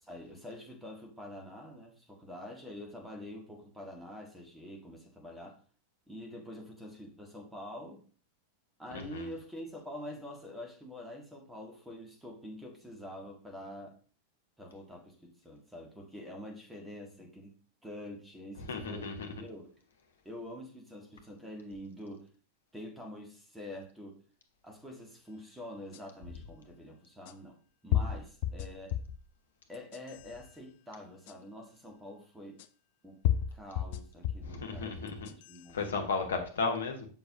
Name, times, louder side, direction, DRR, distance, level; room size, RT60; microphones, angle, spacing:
voice 1, 0.0-5.6 6.1-8.0 8.8-14.0 14.6-17.6 17.8-19.7 20.3-22.3 22.7-24.2 24.6-27.6 27.8-29.0 29.7-32.6 33.0-33.2 33.5-36.0, left 1 dB, 5° right, 1 dB, 1.8 m, -46 dB
voice 2, 8.9-9.3 18.7-19.3 34.4-35.3 35.7-37.1, left 4 dB, 65° left, 4 dB, 1.2 m, -34 dB
sound 1, 25.9-26.0 27.3-27.4 27.9-29.2 29.7-30.3 31.3-31.4 32.6-32.7 33.2-34.6 35.1-35.6, left 10 dB, 50° left, 0.4 m, -32 dB
6.8 x 5.7 x 2.8 m, 0.42 s
figure-of-eight pair, 90°, 0 cm